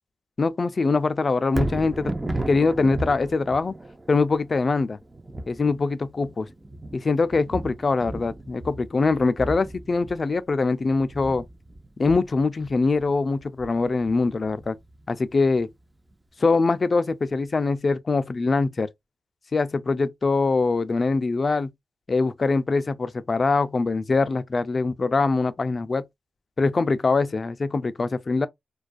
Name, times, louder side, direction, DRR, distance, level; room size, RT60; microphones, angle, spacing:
voice 1, 0.4-3.7 4.1-5.0 5.5-6.5 6.9-11.4 12.0-14.8 15.1-15.7 16.4-18.9 19.5-21.7 22.1-26.0 26.6-28.5, left 3 dB, 45° left, 0.3 m, -23 dB
Thunder, 1.4-15.6 16.1-16.2, right 1 dB, 25° right, 0.5 m, -35 dB
2.3 x 2.2 x 2.5 m
cardioid pair, 75°, 0 cm